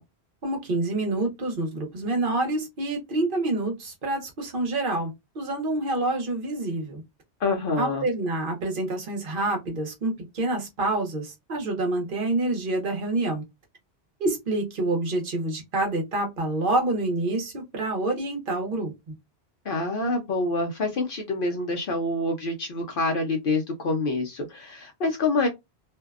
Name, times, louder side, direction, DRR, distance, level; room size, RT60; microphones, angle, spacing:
voice 1, 0.4-7.0 7.8-13.4 14.2-19.1, right 2 dB, 55° right, 1.0 m, -27 dB
voice 2, 7.4-8.0 19.7-25.5, left 3 dB, 60° left, 0.7 m, -26 dB
2.6 x 2.1 x 2.3 m
omnidirectional pair, 1.1 m